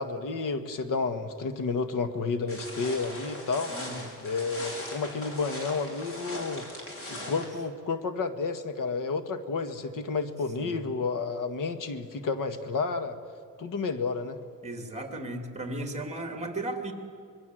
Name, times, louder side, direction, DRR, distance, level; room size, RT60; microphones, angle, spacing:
voice 1, 0.0-3.7 4.2-6.7 7.1-13.2 13.6-14.4, left 4 dB, 75° left, 9 dB, 1.8 m, -31 dB
sound 1, 2.5-7.5, left 1 dB, 45° left, 5.5 m, -40 dB
voice 2, 3.7-4.1 7.2-7.4 10.6-10.8 14.6-16.9, right 2 dB, 20° right, 5 dB, 2.9 m, -36 dB
25.5 x 22.0 x 7.9 m, 2.3 s
wide cardioid pair, 125°, 32 cm